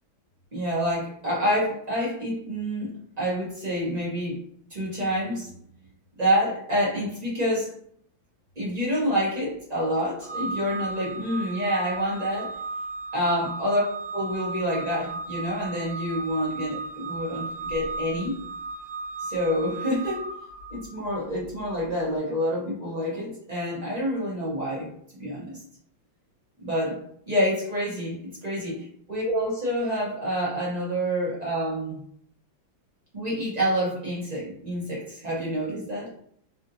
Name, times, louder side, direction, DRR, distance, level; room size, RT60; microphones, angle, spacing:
voice 1, 0.5-4.4 4.7-5.5 6.2-7.7 8.6-12.5 13.1-13.8 14.1-18.4 19.2-20.3 20.7-24.9 25.2-25.6 26.6-32.0 33.1-36.1, equal, 35° right, -6 dB, 0.6 m, -27 dB
Organ, 10.2-21.0, right 3 dB, 55° right, 1.4 m, -35 dB
3.4 x 2.5 x 2.7 m, 0.64 s
omnidirectional pair, 2.2 m